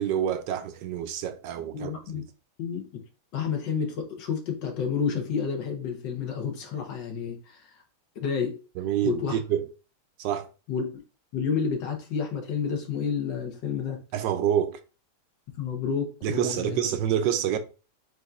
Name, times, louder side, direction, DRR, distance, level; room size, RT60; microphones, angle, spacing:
voice 1, 0.0-2.2 8.8-9.6 10.2-10.5 14.1-14.8 16.2-17.6, right 10 dB, 85° right, 1.3 m, -27 dB
voice 2, 1.7-2.2 2.6-3.0 3.3-7.8 8.1-8.5 9.0-9.4 10.7-10.9 11.3-14.0 15.6-16.8, left 6 dB, 85° left, 1.8 m, -30 dB
7.9 x 2.7 x 2.4 m
omnidirectional pair, 1.9 m